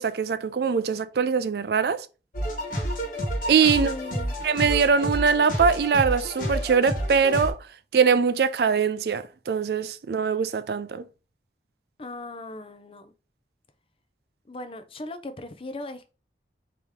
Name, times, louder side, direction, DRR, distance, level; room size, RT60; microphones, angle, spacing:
voice 1, 0.0-2.1 3.5-3.9 4.4-7.6 7.9-11.0, right 6 dB, 65° right, 0.4 m, -22 dB
sound 1, 2.3-7.5, equal, 45° left, 1.4 m, -29 dB
voice 2, 3.7-4.3 12.0-13.1 14.5-16.1, left 2 dB, 30° left, 0.5 m, -38 dB
4.8 x 2.9 x 3.5 m
head